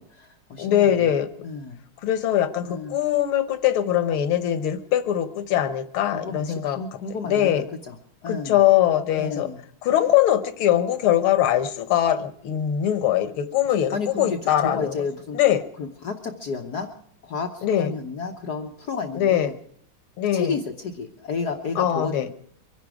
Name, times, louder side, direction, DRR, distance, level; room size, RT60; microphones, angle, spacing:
voice 1, 0.0-0.9 1.4-1.8 2.6-3.0 6.1-8.0 8.2-8.6 9.2-9.6 13.9-15.4 15.8-16.9 17.2-19.5 20.3-22.3, left 5 dB, 55° left, 4 dB, 1.5 m, -31 dB
voice 2, 0.6-1.3 2.0-6.8 7.3-7.6 8.3-9.5 9.8-14.9 15.3-15.6 17.6-17.9 19.1-19.5 20.2-20.5 21.8-22.3, left 11 dB, 85° left, 11 dB, 1.8 m, -22 dB
24.5 x 10.5 x 4.8 m, 0.64 s
omnidirectional pair, 2.2 m